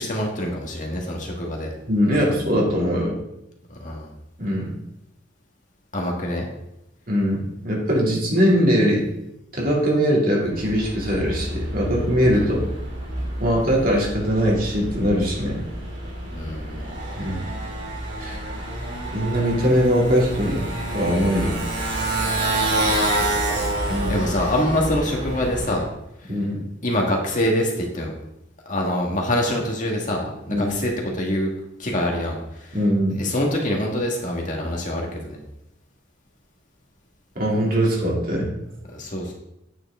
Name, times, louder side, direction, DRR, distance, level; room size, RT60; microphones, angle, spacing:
voice 1, 0.0-1.7 3.8-4.1 5.9-6.5 12.3-12.5 16.3-16.9 23.0-23.6 24.1-25.8 26.8-28.1 28.7-31.5 31.8-32.8 33.2-35.4 38.9-39.3, left 1 dB, 40° left, 0 dB, 1.8 m, -25 dB
voice 2, 1.9-3.2 4.4-4.7 7.1-9.1 9.5-12.6 13.4-15.6 17.2-17.4 18.2-18.4 19.1-20.7 20.9-21.6 23.9-24.2 26.3-26.6 30.5-30.7 32.7-33.2 37.3-38.5, equal, 50° right, -3 dB, 2.8 m, -21 dB
Motorcycle, 10.5-25.9, right 1 dB, 65° right, 3.4 m, -28 dB
9.2 x 7.9 x 3.7 m, 0.86 s
head